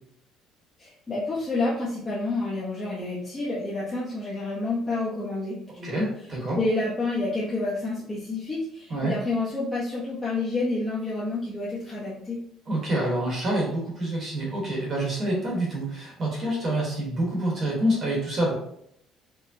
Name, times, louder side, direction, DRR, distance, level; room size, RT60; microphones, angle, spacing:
voice 1, 0.8-6.1 6.5-12.4, left 2 dB, 15° left, -9 dB, 0.7 m, -29 dB
voice 2, 5.8-6.6 8.9-9.1 12.7-18.5, right 1 dB, 35° right, -2 dB, 1.1 m, -27 dB
4.5 x 2.1 x 2.6 m, 0.70 s
cardioid pair, 155°, 0 cm